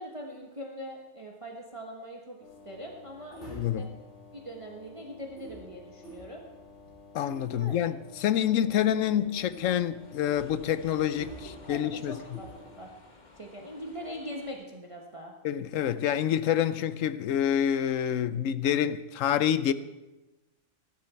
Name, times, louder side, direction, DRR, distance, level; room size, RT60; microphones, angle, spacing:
voice 1, 0.0-3.9 4.3-6.4 7.5-7.8 11.4-12.9 13.4-15.3, equal, 25° right, 1.2 m, -42 dB
sound 1, 2.4-12.9, left 1 dB, 60° left, 3.9 m, -49 dB
voice 2, 3.5-3.9 7.1-12.2 15.4-19.7, left 10 dB, 75° left, 1.0 m, -27 dB
sound 2, 8.4-14.5, left 2 dB, 35° left, 1.5 m, -54 dB
14.5 x 11.5 x 4.5 m
omnidirectional pair, 1.4 m